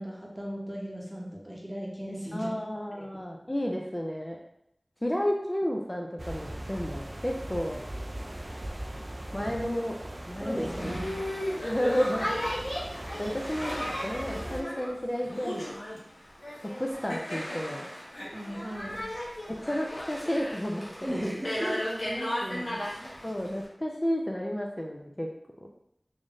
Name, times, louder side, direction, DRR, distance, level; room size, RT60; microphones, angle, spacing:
voice 1, 0.0-2.5 2.9-3.0 10.4-11.4 18.3-19.0 21.0-23.2, equal, 15° right, -3 dB, 0.9 m, -36 dB
voice 2, 2.3-4.4 5.0-7.8 9.3-10.0 10.3-10.9 11.6-12.3 13.2-15.7 16.8-17.9 19.5-21.1 23.2-25.3, equal, 25° left, 0 dB, 0.4 m, -31 dB
sound 1, 6.2-14.6, right 1 dB, 40° right, 0.4 m, -40 dB
Boat Water vehicle, 10.5-23.7, equal, 75° left, 1.0 m, -36 dB
3.5 x 2.6 x 3.6 m, 0.77 s
wide cardioid pair, 55°, 0 cm